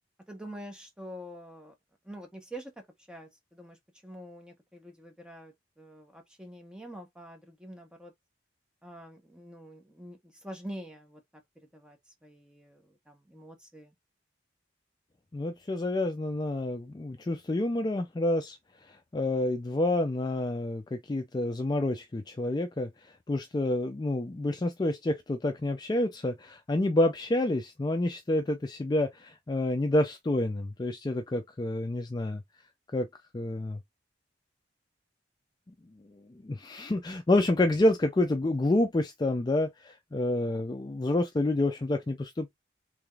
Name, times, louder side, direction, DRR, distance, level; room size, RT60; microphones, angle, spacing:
voice 1, 0.3-1.7 2.0-3.8 4.0-8.1 8.8-13.9, right 1 dB, 5° right, 0.8 m, -46 dB
voice 2, 15.3-18.6 18.9-32.4 32.9-33.1 33.3-33.8 36.3-42.5, left 1 dB, 20° left, 0.3 m, -28 dB
3.4 x 3.3 x 2.3 m
head